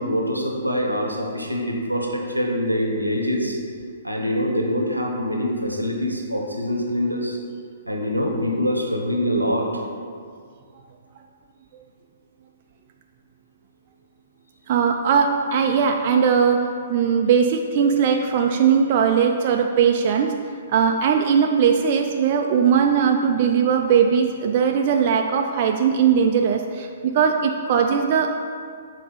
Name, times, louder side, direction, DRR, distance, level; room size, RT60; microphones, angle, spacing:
voice 1, 0.0-3.6 4.0-7.4 7.9-9.8, equal, 85° right, 1 dB, 0.9 m, -24 dB
voice 2, 14.7-20.3 20.7-26.9 27.1-28.3, right 7 dB, 40° right, 3 dB, 0.3 m, -19 dB
6.6 x 4.0 x 4.0 m, 2.1 s
figure-of-eight pair, 120°, 0 cm